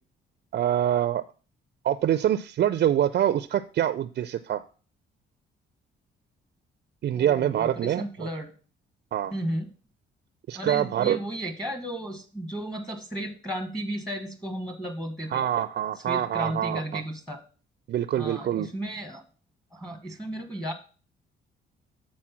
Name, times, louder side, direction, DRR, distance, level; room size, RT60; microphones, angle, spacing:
voice 1, 0.5-1.2 1.8-4.6 7.0-8.3 9.1-9.3 10.5-11.2 15.3-17.0 17.9-18.7, right 11 dB, 55° right, 13 dB, 0.4 m, -25 dB
voice 2, 7.1-8.5 9.3-9.7 10.5-15.4 16.1-17.4 18.2-19.2 19.7-20.7, right 1 dB, 5° left, 7 dB, 1.2 m, -34 dB
7.5 x 4.3 x 5.8 m, 0.38 s
cardioid pair, 90°, 20 cm